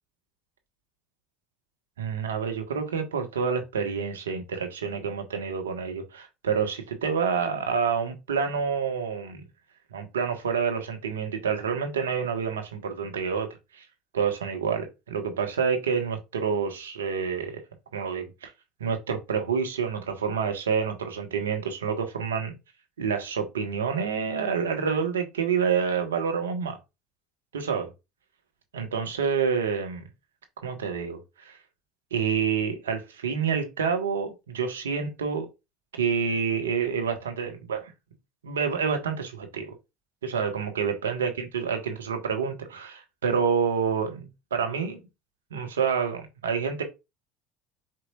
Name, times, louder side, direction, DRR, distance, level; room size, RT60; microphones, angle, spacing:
voice 1, 2.0-9.4 9.9-13.8 14.1-17.6 17.9-18.5 18.8-22.5 23.0-26.8 27.5-27.9 28.7-30.0 30.6-31.6 32.1-35.5 36.0-37.9 38.4-39.7 40.2-45.0 45.5-46.8, right 6 dB, 85° right, 1.3 m, -28 dB
4.7 x 4.7 x 2.4 m
hypercardioid pair, 75°, 0 cm